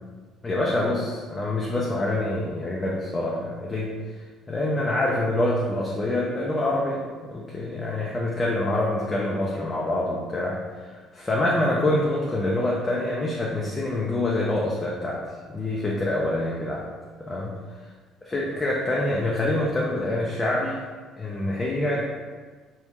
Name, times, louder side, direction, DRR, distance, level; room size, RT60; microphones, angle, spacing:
voice 1, 0.4-3.9 4.5-7.0 7.3-15.2 15.5-16.8 17.2-17.6 18.2-20.8 21.2-22.1, left 1 dB, 20° left, -4 dB, 0.5 m, -26 dB
3.5 x 2.7 x 3.0 m, 1.5 s
cardioid pair, 120°, 0 cm